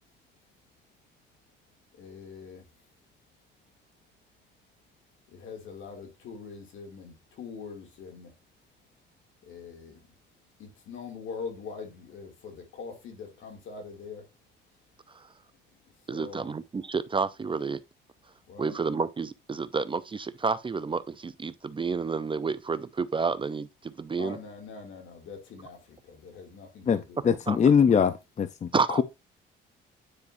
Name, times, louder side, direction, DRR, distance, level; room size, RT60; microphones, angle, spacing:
voice 1, 1.9-2.7 5.3-8.3 9.4-10.1 10.6-14.3 16.0-16.5 18.5-18.8 24.2-27.7, left 5 dB, 80° left, 2.6 m, -43 dB
voice 2, 16.1-17.8 18.6-24.4 27.5-27.6 28.7-29.0, right 4 dB, 25° right, 0.5 m, -30 dB
voice 3, 26.9-29.0, left 7 dB, 35° left, 0.6 m, -23 dB
9.7 x 4.8 x 2.6 m
cardioid pair, 90°, 20 cm